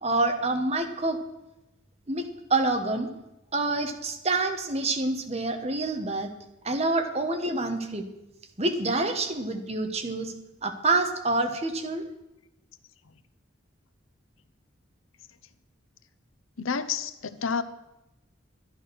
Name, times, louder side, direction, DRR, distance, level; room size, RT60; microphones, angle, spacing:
voice 1, 0.0-1.2 2.1-2.2 2.5-3.1 3.5-6.3 6.6-8.1 8.6-10.3 10.6-12.0, right 2 dB, 30° right, 6 dB, 1.2 m, -27 dB
voice 2, 16.6-17.6, left 6 dB, 90° left, 12 dB, 0.8 m, -29 dB
11.5 x 11.0 x 6.2 m, 0.94 s
head